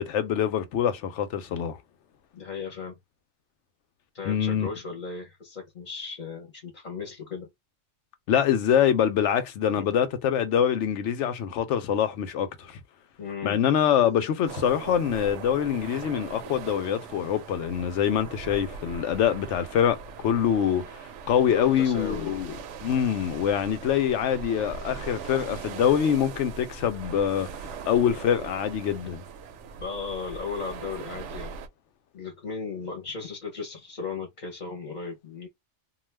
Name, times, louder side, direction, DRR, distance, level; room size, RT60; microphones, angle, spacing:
voice 1, 0.0-1.8 4.3-4.7 8.3-12.8 13.4-22.5 22.8-27.5 27.9-29.2, left 9 dB, 90° left, 0.9 m, -25 dB
voice 2, 2.3-3.0 4.1-7.5 9.8-9.9 13.2-13.6 21.5-22.5 29.8-31.6 32.1-35.5, left 5 dB, 45° left, 0.8 m, -36 dB
sound 1, 14.5-31.7, right 6 dB, 85° right, 0.9 m, -40 dB
2.3 x 2.3 x 3.2 m
omnidirectional pair, 1.2 m